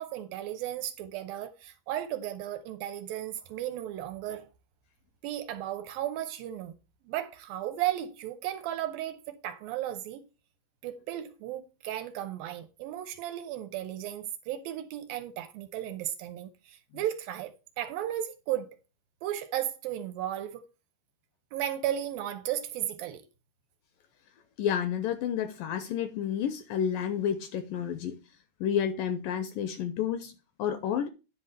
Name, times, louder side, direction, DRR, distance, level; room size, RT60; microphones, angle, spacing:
voice 1, 0.0-4.5 5.2-6.7 7.1-10.3 10.8-18.7 19.2-20.6 21.5-23.2, right 12 dB, 75° right, 2.4 m, -35 dB
voice 2, 24.6-28.2 28.6-31.1, left 9 dB, 80° left, 2.0 m, -30 dB
10.5 x 4.1 x 6.5 m
omnidirectional pair, 4.6 m